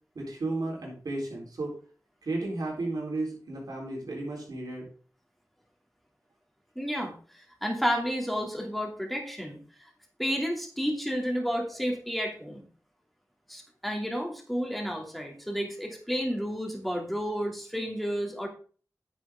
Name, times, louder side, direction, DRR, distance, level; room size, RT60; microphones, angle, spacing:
voice 1, 0.1-1.7 2.2-4.9, right 2 dB, 85° right, -2 dB, 4.0 m, -33 dB
voice 2, 6.8-9.6 10.2-12.7 13.5-18.5, equal, ahead, 1 dB, 2.7 m, -31 dB
9.6 x 7.5 x 3.7 m, 0.41 s
wide cardioid pair, 65°, 6 cm